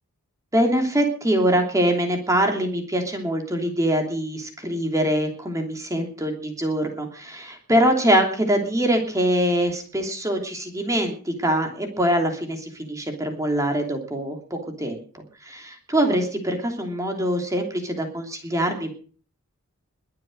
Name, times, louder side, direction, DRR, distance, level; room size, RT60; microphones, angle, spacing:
voice 1, 0.5-15.0 15.4-18.9, right 1 dB, 15° right, 3 dB, 3.0 m, -23 dB
22.5 x 7.7 x 6.5 m, 0.41 s
head